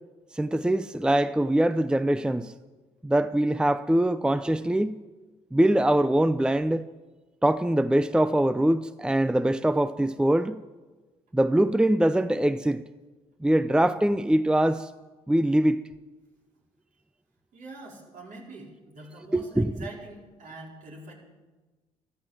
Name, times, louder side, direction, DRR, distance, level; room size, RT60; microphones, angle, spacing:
voice 1, 0.3-2.5 3.0-5.0 5.5-6.9 7.4-10.6 11.3-12.8 13.4-14.9 15.3-15.8 19.3-19.9, right 1 dB, 5° right, 0.6 m, -23 dB
voice 2, 17.5-21.1, right 2 dB, 60° right, 4.8 m, -44 dB
14.0 x 13.5 x 7.5 m
hypercardioid pair, 55°, 15 cm